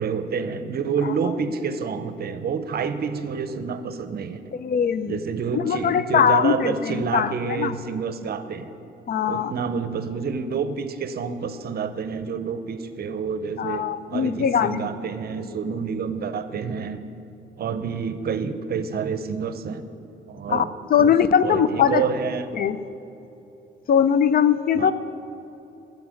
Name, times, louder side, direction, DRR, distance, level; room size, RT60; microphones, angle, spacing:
voice 1, 0.0-4.4 5.1-8.7 9.3-17.0 17.6-19.8 20.3-21.1 21.4-22.7 24.8-24.9, right 6 dB, 50° right, 11 dB, 0.7 m, -28 dB
voice 2, 4.6-5.2 5.5-7.8 9.1-9.5 13.6-14.9 15.4-15.6 20.5-20.6 20.9-22.0 22.5-22.8 23.9-24.9, left 8 dB, 50° left, 14 dB, 0.5 m, -21 dB
10.0 x 8.2 x 6.4 m, 3.0 s
cardioid pair, 90°, 20 cm